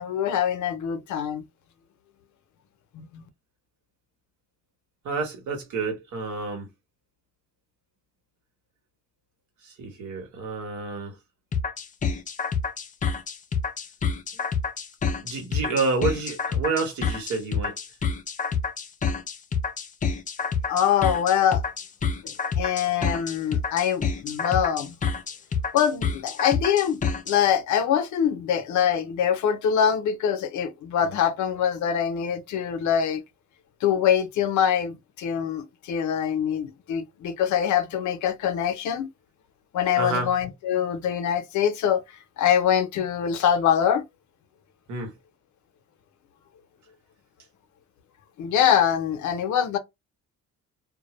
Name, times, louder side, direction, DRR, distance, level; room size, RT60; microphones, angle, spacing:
voice 1, 0.0-1.4 2.9-3.2 20.7-21.6 22.6-25.0 25.7-27.0 27.3-33.2 33.8-39.1 39.7-42.0 42.4-44.0 48.4-49.8, left 9 dB, 75° left, 0.6 m, -24 dB
voice 2, 5.0-6.7 9.6-11.1 15.2-17.7 40.0-40.3 44.9-45.1, right 4 dB, 70° right, 1.1 m, -29 dB
sound 1, 11.5-27.4, left 5 dB, 25° left, 0.4 m, -28 dB
2.2 x 2.0 x 2.9 m
cardioid pair, 90°, 30 cm